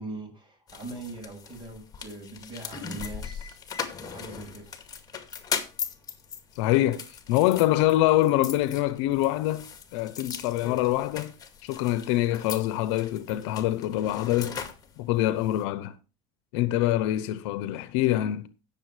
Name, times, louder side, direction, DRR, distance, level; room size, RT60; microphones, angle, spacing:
voice 1, 0.0-3.6 4.0-4.7, right 2 dB, 30° right, 6.5 m, -41 dB
sound 1, 0.7-15.6, left 7 dB, 25° left, 2.1 m, -39 dB
voice 2, 6.6-9.6 9.9-11.3 11.6-14.6 15.0-16.0 16.5-18.5, left 14 dB, 80° left, 0.8 m, -25 dB
17.0 x 7.0 x 3.2 m
supercardioid pair, 115°, 15 cm